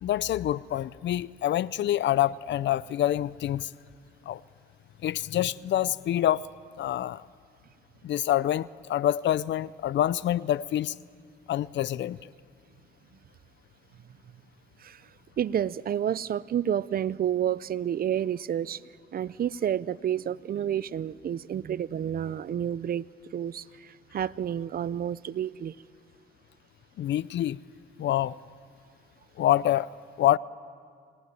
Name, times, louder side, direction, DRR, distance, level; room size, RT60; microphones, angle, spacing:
voice 1, 0.0-3.7 4.3-4.4 5.0-6.5 6.8-7.2 8.0-10.9 11.5-12.2 27.0-27.6 28.0-28.4 29.4-29.9 30.2-30.4, left 12 dB, 65° left, 0.6 m, -26 dB
voice 2, 15.4-18.8 19.1-23.0 23.3-25.7, right 10 dB, 50° right, 0.5 m, -30 dB
27.5 x 18.5 x 9.5 m
cardioid pair, 90°, 20 cm